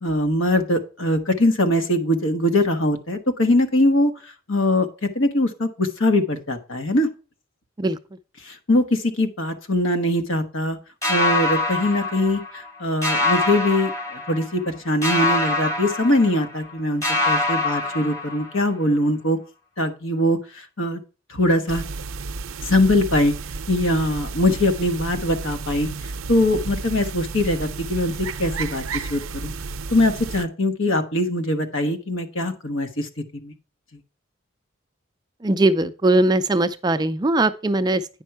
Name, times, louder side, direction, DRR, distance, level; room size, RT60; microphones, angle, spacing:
voice 1, 0.0-4.1 4.5-7.1 8.4-10.8 11.1-19.4 19.8-21.0 21.3-21.8 22.6-23.3 23.7-25.9 26.3-28.1 28.4-29.5 29.9-33.5, left 1 dB, 75° left, 1.3 m, -22 dB
sound 1, 11.0-12.7 13.0-14.7 15.0-16.7 17.0-18.7, left 2 dB, 15° left, 1.4 m, -24 dB
sound 2, 21.7-30.4, right 4 dB, 85° right, 0.6 m, -32 dB
voice 2, 35.4-38.1, right 2 dB, 20° right, 0.4 m, -20 dB
9.3 x 5.4 x 4.5 m
head